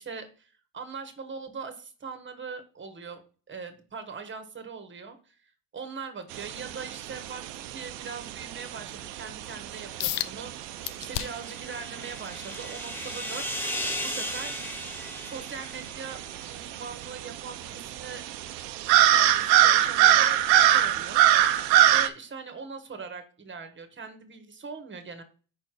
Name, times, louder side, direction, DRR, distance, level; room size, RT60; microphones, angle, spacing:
voice 1, 0.0-3.2 3.5-13.5 14.0-14.6 15.3-16.2 16.5-18.2 19.1-21.2 21.9-25.2, right 5 dB, 25° right, 7 dB, 1.3 m, -41 dB
sound 1, 6.3-22.1, right 12 dB, 85° right, 0.7 m, -25 dB
sound 2, 10.0-10.3 10.8-11.5 12.0-14.6 15.1-15.3 15.9-16.0, left 15 dB, 65° left, 0.5 m, -35 dB
sound 3, 11.0-16.6, left 1 dB, 5° left, 0.9 m, -36 dB
5.3 x 4.4 x 4.8 m, 0.38 s
supercardioid pair, 85°, 47 cm